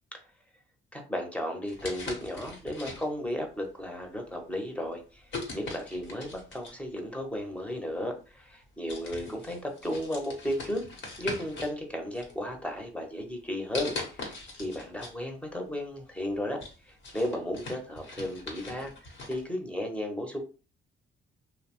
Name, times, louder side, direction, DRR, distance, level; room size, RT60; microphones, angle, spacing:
voice 1, 0.9-5.2 5.5-10.8 11.2-14.0 14.3-16.6 17.1-18.9 19.3-20.4, left 1 dB, 5° left, 3 dB, 0.8 m, -34 dB
sound 1, 1.7-3.3 4.0-4.3 5.3-6.9 7.9-8.0 8.5-8.6 8.9-11.8 12.1-12.9 13.7-15.2 15.5-15.6 16.1-19.4, left 3 dB, 70° left, 1.0 m, -41 dB
2.8 x 2.0 x 2.9 m, 0.34 s
cardioid pair, 90°, 20 cm